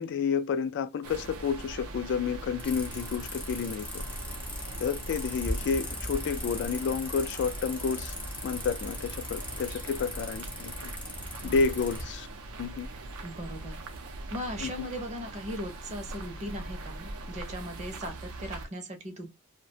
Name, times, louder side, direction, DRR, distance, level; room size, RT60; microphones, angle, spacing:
voice 1, 0.0-4.0 4.8-8.1 8.4-10.9 11.4-12.3 12.6-12.9 14.6-14.9, left 5 dB, 55° left, 0.3 m, -30 dB
sound 1, 1.0-18.7, right 2 dB, 75° right, 0.5 m, -41 dB
sound 2, 2.6-12.0, left 1 dB, 5° left, 0.5 m, -39 dB
voice 2, 13.2-13.8 14.3-19.3, equal, 30° right, 0.6 m, -38 dB
2.4 x 2.1 x 2.6 m
head